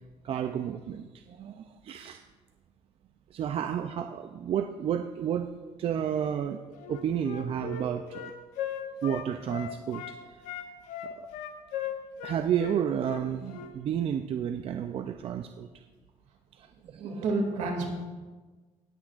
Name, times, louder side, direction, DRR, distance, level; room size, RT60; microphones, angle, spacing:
voice 1, 0.2-2.2 3.3-5.5 5.8-8.3 9.0-10.7 11.0-11.3 12.2-15.8 16.6-17.2, right 9 dB, 50° right, 7 dB, 0.5 m, -32 dB
Wind instrument woodwind instrument, 6.8-10.2 10.4-13.7, left 8 dB, 85° left, 0.9 m, -37 dB
voice 2, 16.9-17.9, right 3 dB, 70° right, 2 dB, 2.5 m, -30 dB
18.0 x 9.9 x 2.5 m, 1.3 s
cardioid pair, 115°, 13 cm